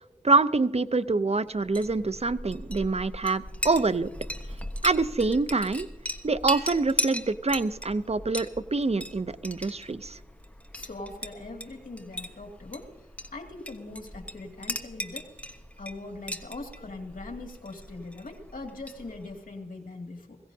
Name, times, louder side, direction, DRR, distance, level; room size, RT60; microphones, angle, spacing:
voice 1, 0.2-4.1 4.8-5.9 6.2-10.2, right 3 dB, 50° right, 14 dB, 0.6 m, -25 dB
Chink clink, 1.6-19.4, left 1 dB, 10° left, 1.3 m, -38 dB
voice 2, 10.7-12.9 13.3-15.3 15.8-20.4, left 2 dB, 80° left, 2 dB, 2.4 m, -41 dB
21.5 x 17.0 x 2.8 m, 1.2 s
wide cardioid pair, 45°, 14 cm